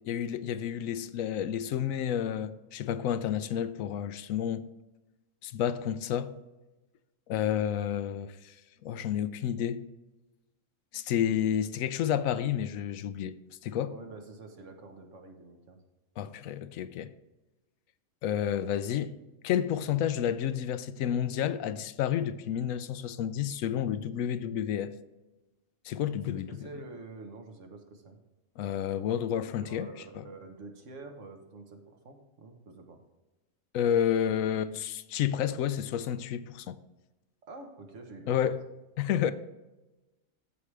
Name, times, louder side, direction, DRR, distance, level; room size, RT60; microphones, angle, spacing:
voice 1, 0.1-4.7 5.4-6.3 7.3-8.5 8.8-9.9 10.9-13.3 13.6-13.9 16.2-17.1 18.2-19.1 19.4-24.9 25.8-26.7 28.6-29.9 30.1-30.3 33.7-36.8 38.3-38.6 39.0-39.3, left 9 dB, 85° left, 1.0 m, -30 dB
voice 2, 13.9-15.8 26.3-28.2 29.2-29.3 29.6-33.0 37.5-38.5 39.2-39.3, right 3 dB, 65° right, 1.5 m, -47 dB
14.0 x 4.9 x 3.3 m
omnidirectional pair, 1.4 m